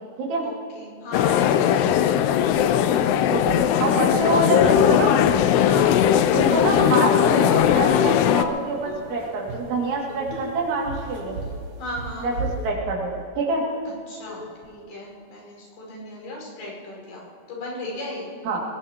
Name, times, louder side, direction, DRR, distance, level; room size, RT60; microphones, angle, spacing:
voice 1, 0.4-2.2 5.6-6.0 11.8-12.3 14.1-18.3, left 1 dB, 60° left, -2 dB, 6.9 m, -36 dB
sound 1, 1.1-8.4, left 10 dB, 80° left, 2.4 m, -19 dB
sound 2, 1.8-12.7, right 3 dB, 65° right, 2.3 m, -39 dB
voice 2, 3.3-5.2 6.3-11.4 12.2-13.1 13.4-13.7 18.5-18.6, right 2 dB, 90° right, -2 dB, 4.8 m, -26 dB
sound 3, 8.9-9.1 10.1-10.7 11.0-11.7 12.0-12.1 12.5-12.7 13.1-13.2 13.7-14.0 14.3-14.7, left 2 dB, 45° left, 4.9 m, -41 dB
21.0 x 20.0 x 2.9 m, 2.3 s
omnidirectional pair, 5.2 m